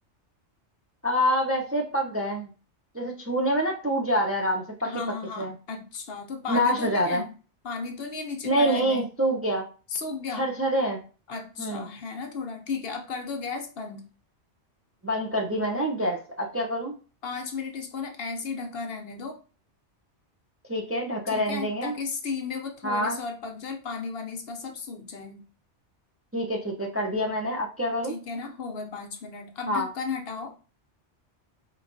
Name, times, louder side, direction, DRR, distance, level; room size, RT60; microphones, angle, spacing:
voice 1, 1.0-2.5 2.9-4.9 5.4-5.5 6.5-7.2 8.4-9.6 10.4-11.0 11.6-11.8 15.0-16.9 20.7-21.9 22.8-23.2 26.3-28.1 29.7-29.9, equal, 20° right, 0 dB, 0.4 m, -26 dB
voice 2, 4.8-7.3 7.6-9.0 9.9-10.5 11.3-14.0 17.2-19.4 21.3-25.4 28.0-30.5, left 4 dB, 60° left, 4 dB, 0.8 m, -34 dB
4.9 x 3.0 x 2.6 m, 0.35 s
omnidirectional pair, 1.2 m